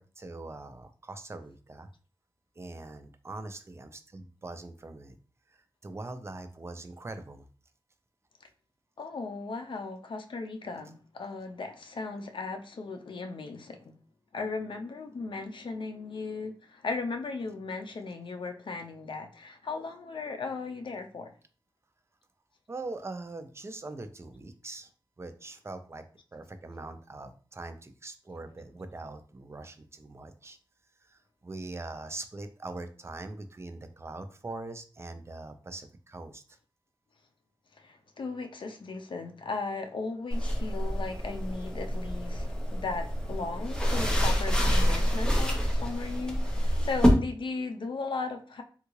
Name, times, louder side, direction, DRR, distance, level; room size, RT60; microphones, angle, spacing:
voice 1, 0.0-1.9 2.6-5.2 5.5-7.5 22.7-24.9 25.2-26.0 26.3-30.6 31.0-36.6, right 2 dB, 30° right, 0.4 m, -42 dB
voice 2, 9.0-13.9 14.3-21.3 37.8-48.6, left 4 dB, 65° left, 0.5 m, -37 dB
sound 1, 40.3-47.1, equal, 10° left, 0.8 m, -27 dB
3.6 x 2.3 x 3.0 m
wide cardioid pair, 100°, 9 cm